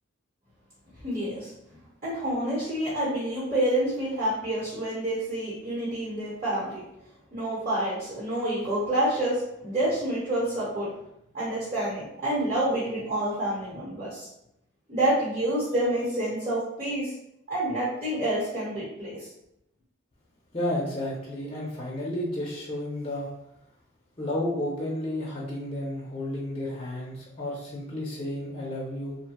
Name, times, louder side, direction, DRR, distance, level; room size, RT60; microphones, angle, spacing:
voice 1, 1.0-6.8 7.3-10.9 11.3-14.3 14.9-17.1 17.5-19.3, right 1 dB, 35° right, -8 dB, 1.0 m, -28 dB
voice 2, 20.5-23.3 24.2-29.2, left 1 dB, 25° left, -5 dB, 0.5 m, -32 dB
2.7 x 2.2 x 2.8 m, 0.80 s
head